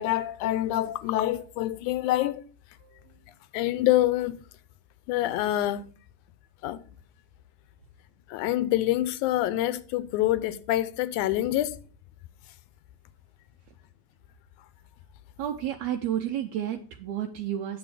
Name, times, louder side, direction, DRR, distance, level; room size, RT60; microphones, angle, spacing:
voice 1, 0.0-2.4 3.5-4.4 5.1-5.9 6.6-6.8 8.3-11.8, left 14 dB, 90° left, 2.1 m, -26 dB
voice 2, 2.8-3.2 15.4-17.8, right 10 dB, 75° right, 2.0 m, -31 dB
9.1 x 7.0 x 4.9 m
omnidirectional pair, 3.4 m